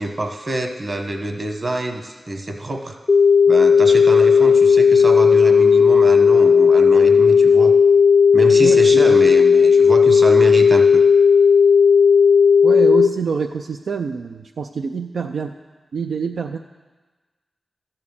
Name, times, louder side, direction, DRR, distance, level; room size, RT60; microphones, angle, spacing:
voice 1, 0.0-3.0 3.5-7.7 8.3-11.0, right 1 dB, 45° right, 4 dB, 1.2 m, -26 dB
sound 1, 3.1-13.1, left 6 dB, 55° left, 0.5 m, -13 dB
voice 2, 8.6-9.2 12.6-15.5 15.9-16.6, right 5 dB, 80° right, 4 dB, 0.3 m, -26 dB
12.5 x 4.3 x 7.2 m, 1.3 s
cardioid pair, 45°, 0 cm